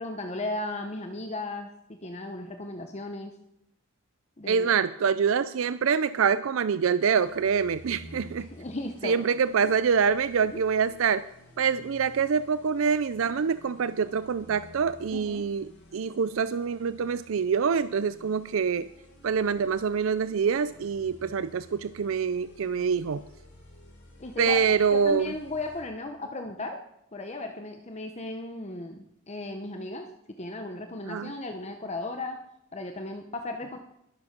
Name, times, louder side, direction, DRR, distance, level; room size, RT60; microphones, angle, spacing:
voice 1, 0.0-3.3 4.4-4.7 8.4-9.2 10.5-10.6 15.1-15.5 24.2-24.6 24.9-26.8 27.1-30.1 30.4-32.4 32.7-33.8, left 2 dB, 30° left, 5 dB, 0.9 m, -36 dB
voice 2, 4.5-8.5 9.0-11.2 11.6-18.9 19.2-23.2 24.4-25.3 31.1-31.3, right 6 dB, 65° right, 14 dB, 0.4 m, -25 dB
sound 1, 7.1-25.8, left 1 dB, 70° left, 6.5 m, -52 dB
21.0 x 7.8 x 5.9 m, 0.82 s
head